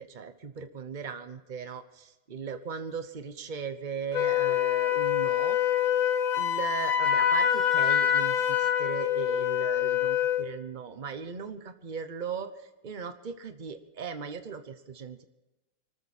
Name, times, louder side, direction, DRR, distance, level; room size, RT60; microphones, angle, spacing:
voice 1, 0.0-5.6 6.0-15.2, right 6 dB, 80° right, 9 dB, 0.4 m, -38 dB
Wind instrument woodwind instrument, 4.1-10.5, left 10 dB, 65° left, 2.4 m, -25 dB
24.5 x 13.5 x 4.2 m, 1.0 s
omnidirectional pair, 2.3 m